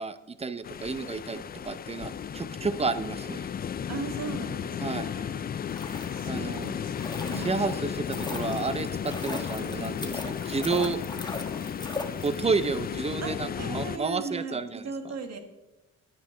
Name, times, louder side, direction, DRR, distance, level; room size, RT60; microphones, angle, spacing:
voice 1, 0.0-3.5 4.8-5.1 6.3-6.7 7.4-11.0 12.2-14.9, right 4 dB, 20° right, 13 dB, 0.6 m, -31 dB
sound 1, 0.6-14.0, left 8 dB, 30° left, 0.4 m, -34 dB
voice 2, 3.9-5.5 5.7-7.6 13.2-15.4, right 4 dB, 60° right, 7 dB, 1.6 m, -38 dB
sound 2, 5.6-12.7 13.0-13.1, left 3 dB, 15° left, 1.2 m, -39 dB
10.5 x 9.2 x 3.8 m, 1.0 s
cardioid pair, 90°, 30 cm